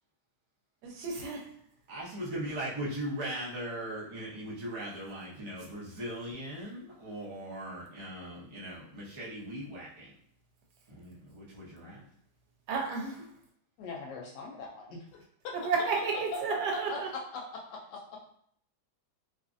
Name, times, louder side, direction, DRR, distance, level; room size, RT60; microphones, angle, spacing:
voice 1, 0.8-1.5 12.7-13.3 15.6-17.1, right 5 dB, 75° right, 0 dB, 1.3 m, -32 dB
voice 2, 1.9-10.1 10.9-12.0, right 1 dB, 30° right, -7 dB, 0.5 m, -39 dB
voice 3, 13.8-15.0 15.4-15.6 16.3-16.6 16.9-17.0 17.3-18.0, left 4 dB, 85° left, -1 dB, 1.2 m, -40 dB
2.9 x 2.4 x 2.5 m, 0.65 s
omnidirectional pair, 1.8 m